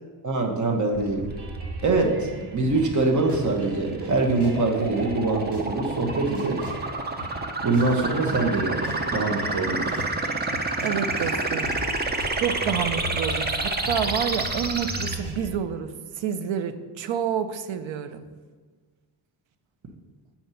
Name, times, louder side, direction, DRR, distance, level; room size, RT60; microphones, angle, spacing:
voice 1, 0.2-1.3 1.8-6.7 7.6-8.8 9.1-9.9, right 3 dB, 40° right, 2 dB, 1.0 m, -24 dB
sound 1, 0.9-15.1, right 2 dB, 25° right, 0.5 m, -30 dB
sound 2, 1.3-15.5, left 1 dB, 60° right, 1.6 m, -39 dB
voice 2, 10.8-11.7 12.4-15.9 16.1-18.3, right 8 dB, 80° right, 11 dB, 0.6 m, -29 dB
7.6 x 4.3 x 5.5 m, 1.5 s
wide cardioid pair, 150°, 45 cm